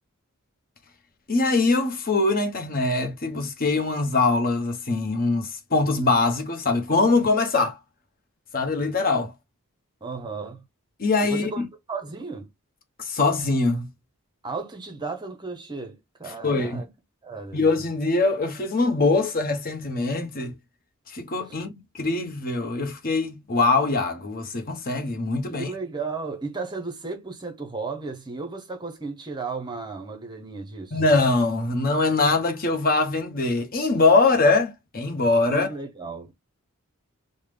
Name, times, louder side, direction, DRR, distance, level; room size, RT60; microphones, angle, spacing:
voice 1, 1.3-7.8 8.5-9.3 11.0-11.7 13.0-13.9 16.4-16.8 17.5-20.5 21.1-25.7 30.9-35.7, left 3 dB, 40° left, 0.9 m, -23 dB
voice 2, 10.0-10.6 11.2-11.6 11.9-12.5 14.4-16.9 17.2-17.6 25.5-31.0 35.5-36.3, right 4 dB, 20° right, 0.7 m, -34 dB
3.6 x 2.1 x 3.3 m
head